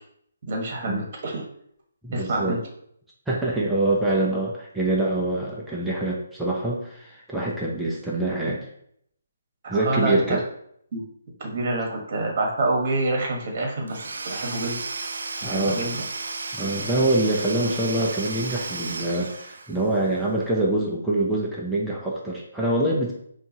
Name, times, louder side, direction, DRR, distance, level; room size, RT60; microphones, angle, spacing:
voice 1, 0.5-1.4 2.1-2.6 9.6-10.4 10.9-11.0 11.4-14.8 15.4-16.0, right 2 dB, 45° right, 0 dB, 1.4 m, -27 dB
voice 2, 2.0-2.5 3.3-8.7 9.7-10.4 15.4-15.8 16.6-23.1, right 2 dB, 5° right, -5 dB, 0.6 m, -25 dB
Domestic sounds home sounds / Tools, 13.9-20.0, right 3 dB, 70° right, 0.4 m, -34 dB
5.2 x 2.5 x 2.8 m, 0.70 s
figure-of-eight pair, 150°, 0 cm